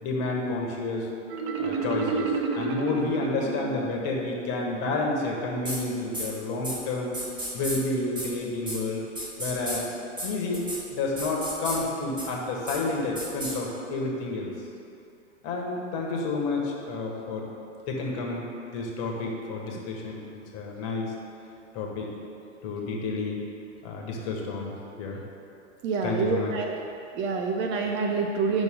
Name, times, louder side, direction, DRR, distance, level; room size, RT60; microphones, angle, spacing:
voice 1, 0.0-1.1 1.6-7.2 7.5-9.1 9.4-9.9 10.2-10.6 10.9-14.5 15.4-17.5 17.9-20.2 20.5-21.1 21.7-22.1 22.6-23.4 23.8-25.2 26.0-26.5, left 3 dB, 40° left, -1 dB, 1.7 m, -30 dB
Marimba xylophone, 1.3-4.1, right 4 dB, 55° right, 1.1 m, -30 dB
sound 1, 5.7-5.8 6.1-6.3 6.6-6.8 7.1-7.8 8.2-8.3 8.7-8.8 9.2-9.8 10.2-10.3 10.5-10.8 11.2-11.8 12.2-12.3 12.7-12.8 13.2-13.5, right 1 dB, 10° right, 1.6 m, -32 dB
voice 2, 25.8-26.7 27.2-28.6, right 4 dB, 30° right, 2 dB, 0.7 m, -27 dB
10.5 x 6.1 x 3.8 m, 2.7 s
hypercardioid pair, 110°, 38 cm